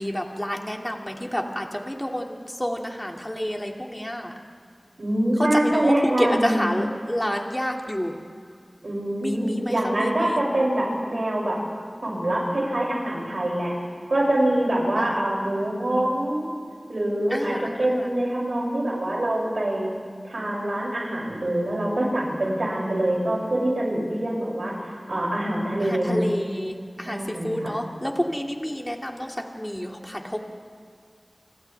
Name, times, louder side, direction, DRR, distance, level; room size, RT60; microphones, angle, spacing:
voice 1, 0.0-4.3 5.4-8.1 9.2-10.4 15.0-15.2 17.3-18.1 25.8-30.4, equal, 15° left, 1 dB, 2.5 m, -29 dB
voice 2, 5.0-6.7 8.8-11.6 12.0-13.7 14.1-16.5 16.9-19.9 20.2-24.7 25.1-26.2 27.0-27.7, right 1 dB, 80° right, -4 dB, 6.8 m, -25 dB
30.0 x 25.0 x 3.5 m, 2.1 s
wide cardioid pair, 40°, 0 cm